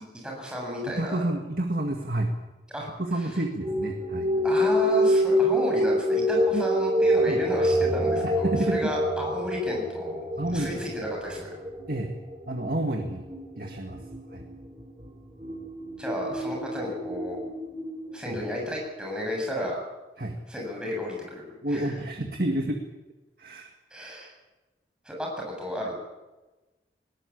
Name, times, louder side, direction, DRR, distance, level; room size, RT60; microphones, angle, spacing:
voice 1, 0.2-1.2 2.7-2.9 4.4-11.5 16.0-17.4 18.1-19.8 20.5-21.9 23.9-24.3 25.0-25.3 25.6-25.9, left 1 dB, 5° right, -1 dB, 7.6 m, -32 dB
voice 2, 0.9-2.3 3.0-4.3 6.5-6.7 7.3-7.4 8.4-9.0 10.4-10.7 11.9-12.1 12.5-13.3 13.6-14.4 18.3-18.4 20.2-20.4 21.6-22.8 23.4-23.7, right 1 dB, 55° right, 3 dB, 2.0 m, -29 dB
sound 1, 3.6-18.2, equal, 25° right, 3.1 m, -27 dB
20.0 x 18.5 x 8.5 m, 1.1 s
head